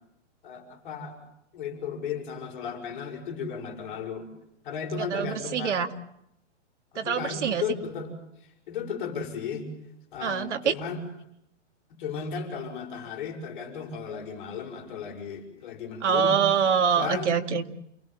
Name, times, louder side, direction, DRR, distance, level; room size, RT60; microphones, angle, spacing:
voice 1, 0.4-1.2 1.5-4.3 4.6-5.8 6.9-8.1 8.7-9.7 10.1-11.0 12.0-16.4 17.0-17.4, left 6 dB, 40° left, 3 dB, 6.6 m, -35 dB
voice 2, 5.0-5.9 7.0-7.6 10.2-10.7 16.0-17.7, right 7 dB, 75° right, 7 dB, 2.4 m, -25 dB
29.0 x 19.5 x 9.2 m, 0.78 s
hypercardioid pair, 170°, 36 cm